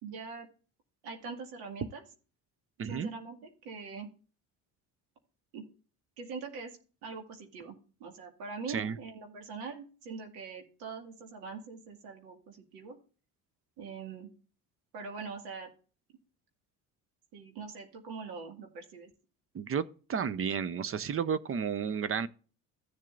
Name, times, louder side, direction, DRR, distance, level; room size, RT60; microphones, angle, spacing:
voice 1, 0.0-0.5 1.0-2.0 2.8-4.1 5.5-5.6 6.2-13.0 13.8-14.3 14.9-15.7 17.3-19.1, right 5 dB, 80° right, 2.1 m, -43 dB
voice 2, 19.5-22.3, right 7 dB, 35° right, 0.6 m, -32 dB
15.5 x 7.3 x 2.5 m
supercardioid pair, 75°, 37 cm